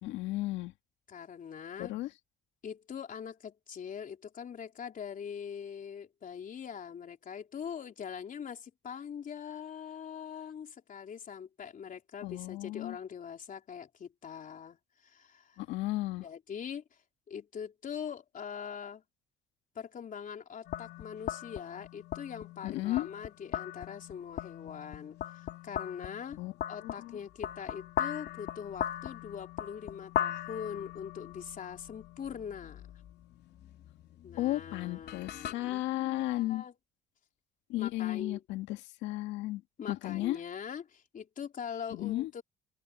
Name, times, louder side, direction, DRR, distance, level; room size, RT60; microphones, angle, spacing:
voice 1, 0.0-0.7 1.8-2.1 12.2-13.0 15.6-16.2 22.6-23.1 26.4-26.5 26.8-27.2 34.4-36.6 37.7-39.6 39.9-40.4 41.9-42.3, left 17 dB, 85° left, 2.0 m, -34 dB
voice 2, 1.1-2.0 2.6-15.6 16.2-16.8 17.3-19.0 19.8-26.4 26.7-32.9 34.2-36.7 37.8-38.4 39.8-42.4, left 7 dB, 50° left, 3.8 m, -42 dB
sound 1, 20.7-35.5, left 10 dB, 65° left, 3.0 m, -40 dB
cardioid pair, 85°, 18 cm